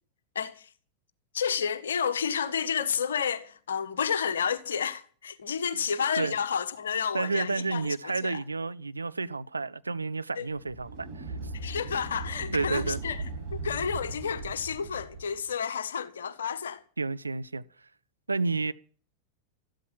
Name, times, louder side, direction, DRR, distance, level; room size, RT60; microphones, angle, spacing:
voice 1, 0.3-0.7 1.3-8.4 10.3-10.5 11.5-13.2 13.5-16.8, left 7 dB, 65° left, 1.4 m, -31 dB
voice 2, 7.1-11.1 12.5-13.0 17.0-17.6 18.3-18.7, right 3 dB, 80° right, 0.6 m, -30 dB
sound 1, 10.5-15.4, right 3 dB, 45° right, 6.9 m, -38 dB
14.0 x 12.5 x 7.2 m
figure-of-eight pair, 90°, 0 cm